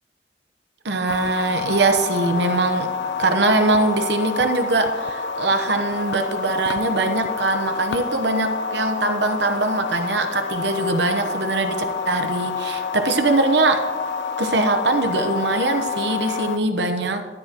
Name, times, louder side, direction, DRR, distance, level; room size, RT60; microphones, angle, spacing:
voice 1, 0.8-2.9 3.2-13.8 14.4-17.2, right 2 dB, 80° right, 6 dB, 1.0 m, -22 dB
sound 1, 1.1-16.6, left 5 dB, 75° left, 0.3 m, -28 dB
13.0 x 11.0 x 3.0 m, 1.5 s
head